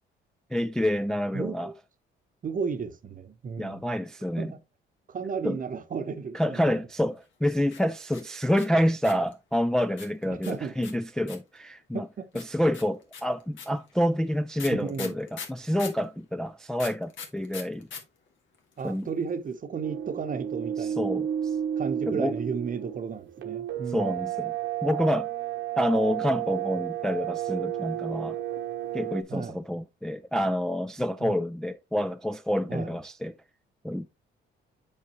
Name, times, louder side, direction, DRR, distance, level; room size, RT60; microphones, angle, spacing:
voice 1, 0.5-1.7 3.6-4.5 5.4-5.6 6.3-12.1 12.3-17.9 18.8-19.1 21.0-21.6 22.1-22.4 23.9-24.5 24.8-25.3 25.8-28.4 28.9-33.4 33.8-34.1, equal, 5° left, 0.3 m, -28 dB
voice 2, 1.3-1.7 2.4-3.9 4.4-4.6 5.1-6.8 10.3-10.7 11.9-12.3 14.7-15.2 18.8-21.2 21.8-24.2 29.3-29.6 31.2-31.4 32.7-33.0, right 5 dB, 45° right, 0.9 m, -34 dB
sound 1, 7.6-9.3 10.0-11.6 12.3-16.0 16.8-18.0 18.3-18.4 18.5-19.0, left 6 dB, 75° left, 1.7 m, -41 dB
sound 2, 19.8-29.2, right 10 dB, 75° right, 1.0 m, -32 dB
7.4 x 5.0 x 3.0 m
cardioid pair, 90°, 20 cm